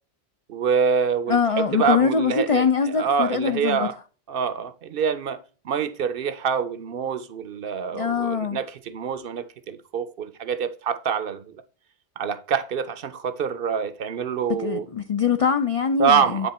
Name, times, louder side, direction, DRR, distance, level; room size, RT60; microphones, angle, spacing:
voice 1, 0.5-3.9 4.3-5.4 5.6-11.4 12.2-14.9 16.0-16.5, right 6 dB, 65° right, 0.8 m, -25 dB
voice 2, 1.3-3.9 7.9-8.6 14.5-16.5, left 6 dB, 50° left, 0.4 m, -23 dB
9.4 x 3.6 x 4.1 m
omnidirectional pair, 1.1 m